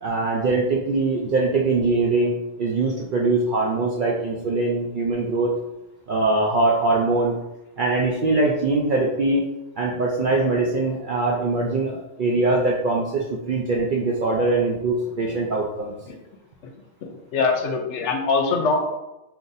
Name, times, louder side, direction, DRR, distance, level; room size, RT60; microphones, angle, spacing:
voice 1, 0.0-5.5 6.1-7.4 7.8-9.4 9.8-15.9, right 3 dB, 65° right, -2 dB, 0.5 m, -22 dB
voice 2, 17.0-18.9, left 4 dB, 75° left, 3 dB, 0.9 m, -23 dB
3.8 x 2.6 x 2.6 m, 0.93 s
omnidirectional pair, 1.3 m